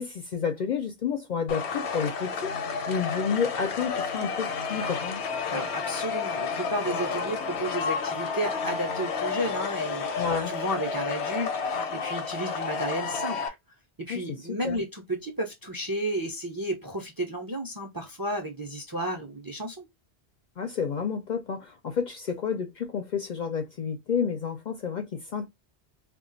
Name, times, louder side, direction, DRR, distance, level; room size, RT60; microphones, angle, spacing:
voice 1, 0.0-2.5 2.9-5.2 10.2-10.5 14.1-14.2 14.5-14.8 20.6-25.5, left 6 dB, 55° left, 0.5 m, -30 dB
sound 1, 1.5-13.5, left 5 dB, 85° left, 0.9 m, -31 dB
voice 2, 5.5-13.5 14.1-19.9, right 1 dB, 30° right, 0.4 m, -32 dB
2.3 x 2.2 x 3.8 m
omnidirectional pair, 1.1 m